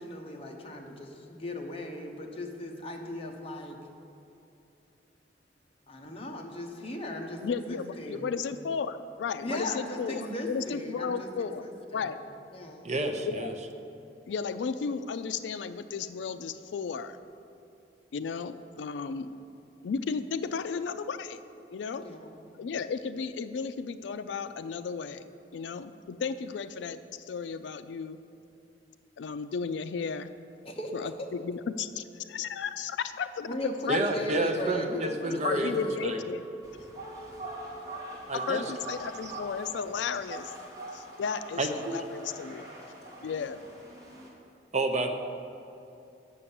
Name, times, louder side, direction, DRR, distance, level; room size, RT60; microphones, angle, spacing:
voice 1, 0.0-3.8 5.9-8.3 9.4-12.1 12.5-12.9 21.9-22.4 30.6-31.3 33.5-35.9 37.2-37.4, left 1 dB, 35° left, 2 dB, 1.0 m, -38 dB
voice 2, 7.4-11.6 11.9-12.2 13.2-13.5 14.3-17.2 18.1-19.3 19.8-21.4 21.7-22.1 22.6-28.2 29.2-30.3 30.9-34.0 34.6-34.7 35.4-36.4 38.3-40.5 40.9-42.7 43.2-43.6, left 5 dB, 80° left, 11 dB, 0.4 m, -34 dB
voice 3, 12.8-13.5 33.9-35.7 36.0-36.2 38.3-38.6 41.6-42.0 44.7-45.1, right 2 dB, 40° right, 5 dB, 0.7 m, -29 dB
Chink clink, 35.7-40.0 40.5-41.1, right 1 dB, ahead, 1.1 m, -47 dB
sound 1, 36.6-44.3, right 1 dB, 20° right, 2.1 m, -43 dB
8.5 x 6.6 x 7.0 m, 2.7 s
head